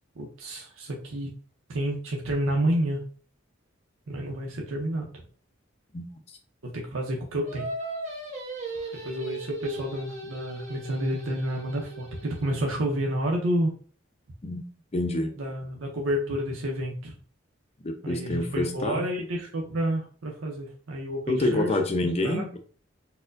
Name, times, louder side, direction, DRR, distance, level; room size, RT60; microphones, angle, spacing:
voice 1, 0.2-1.3 1.7-3.0 4.1-5.2 6.6-7.7 9.0-13.7 15.4-17.2 18.0-21.7 22.2-22.4, right 1 dB, 90° right, 0 dB, 0.6 m, -29 dB
Singing, 7.4-12.8, right 2 dB, 35° right, 0.9 m, -38 dB
voice 2, 14.9-15.3 17.8-19.0 21.3-22.6, left 2 dB, 30° left, 5 dB, 0.5 m, -27 dB
4.2 x 2.1 x 2.5 m, 0.42 s
head